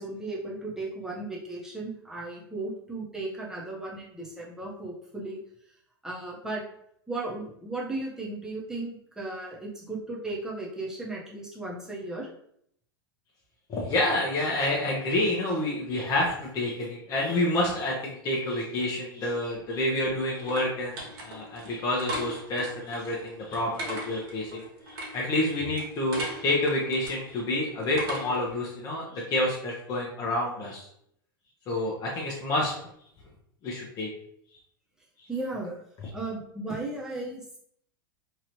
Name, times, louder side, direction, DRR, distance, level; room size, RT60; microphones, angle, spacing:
voice 1, 0.0-5.4 6.0-6.6 7.1-12.3 35.3-35.7 36.1-37.6, right 2 dB, 5° right, -4 dB, 0.9 m, -35 dB
voice 2, 13.7-24.6 24.9-30.9 31.7-32.7 33.6-34.1, left 1 dB, 30° left, -3 dB, 0.8 m, -28 dB
sound 1, 19.5-28.5, right 1 dB, 60° right, 1.2 m, -39 dB
3.0 x 2.5 x 2.9 m, 0.70 s
hypercardioid pair, 105°, 12 cm